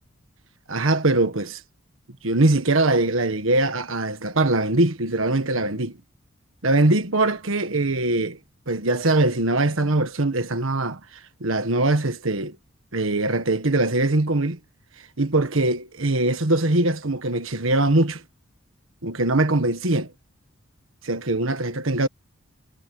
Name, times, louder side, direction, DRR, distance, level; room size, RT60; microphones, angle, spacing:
voice 1, 0.7-1.6 2.2-6.0 6.6-8.4 8.7-11.0 11.4-12.6 12.9-14.6 15.2-18.2 19.0-20.1 21.0-22.1, right 2 dB, 70° right, 1.6 m, -22 dB
head